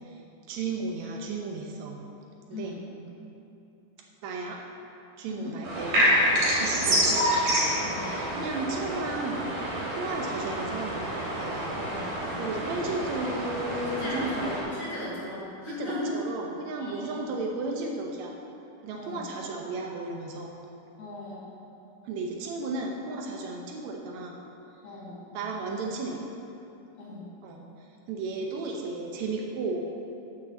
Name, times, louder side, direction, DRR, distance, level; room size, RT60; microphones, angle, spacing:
voice 1, 0.5-2.0 2.5-2.7 4.2-4.6 5.2-7.3 8.3-9.6 9.9-11.7 12.4-14.3 15.7-18.3 18.8-20.5 22.0-24.3 25.3-26.2 27.4-27.6 28.1-29.9, right 3 dB, 85° right, 0 dB, 1.6 m, -34 dB
voice 2, 2.5-2.8 5.3-5.6 6.7-7.0 7.8-8.2 11.7-12.6 13.9-16.1 16.8-17.2 18.9-19.3 21.0-21.5 24.8-25.2 27.0-27.3, left 1 dB, 45° left, -9 dB, 3.0 m, -38 dB
sound 1, 5.6-14.6, equal, 55° right, 4.2 m, -28 dB
9.1 x 6.5 x 7.0 m, 2.8 s
omnidirectional pair, 4.4 m